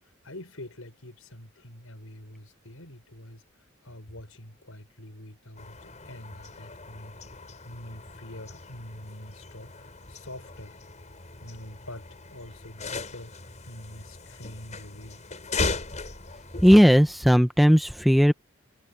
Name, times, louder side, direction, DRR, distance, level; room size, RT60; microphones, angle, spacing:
voice 1, 0.2-3.4 3.8-7.2 7.7-10.8 11.4-13.3 13.7-15.2, left 1 dB, 75° left, 6.1 m, -45 dB
sound 1, 5.6-16.8, left 3 dB, 35° left, 4.8 m, -38 dB
voice 2, 16.6-18.3, equal, ahead, 0.8 m, -17 dB
head